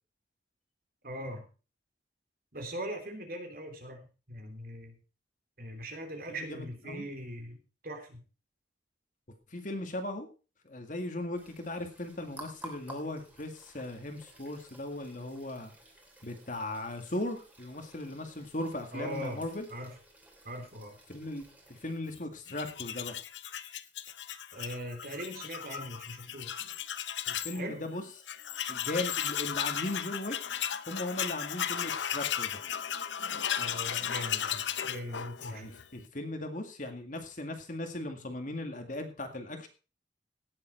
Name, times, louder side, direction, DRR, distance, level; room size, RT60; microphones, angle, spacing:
voice 1, 1.0-1.4 2.5-5.0 5.6-8.2 18.9-19.9 20.4-21.0 24.5-26.7 27.5-27.9 33.6-35.7, equal, 50° right, 4 dB, 3.2 m, -41 dB
voice 2, 6.3-7.1 9.5-10.3 10.6-15.7 16.2-19.7 21.1-21.4 21.7-23.2 27.3-28.0 28.7-30.4 30.9-32.5 35.5-39.7, left 1 dB, 45° left, 6 dB, 2.1 m, -38 dB
sound 1, 11.3-21.9, right 1 dB, 10° right, 3.1 m, -53 dB
Tools, 22.5-27.6 27.9-28.0 28.3-35.9, left 9 dB, 80° left, 0.7 m, -35 dB
17.0 x 7.5 x 4.5 m, 0.34 s
head